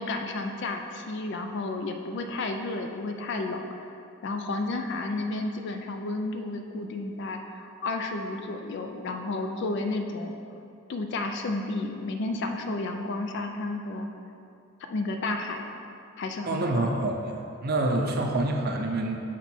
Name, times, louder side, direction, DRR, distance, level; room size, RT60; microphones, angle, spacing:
voice 1, 0.0-10.4 10.9-14.1 14.9-15.7 16.2-17.1, left 2 dB, 55° left, 5 dB, 0.4 m, -32 dB
voice 2, 16.5-17.3 17.6-19.2, right 2 dB, 45° right, 2 dB, 0.6 m, -27 dB
6.1 x 4.4 x 4.3 m, 2.6 s
head